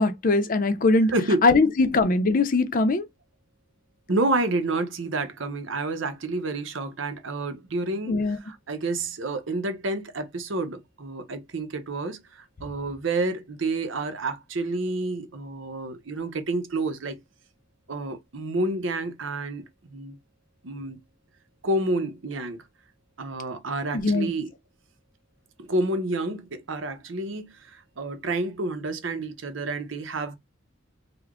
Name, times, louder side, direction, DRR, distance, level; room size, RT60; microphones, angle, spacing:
voice 1, 0.0-1.1 1.4-3.1 8.1-8.4 23.9-24.3, left 3 dB, 45° left, 0.5 m, -21 dB
voice 2, 1.1-1.5 4.1-12.2 12.6-17.2 17.9-20.2 20.6-21.0 21.6-22.6 23.2-24.5 25.6-30.4, right 2 dB, 75° right, 0.8 m, -29 dB
3.3 x 2.1 x 3.6 m
head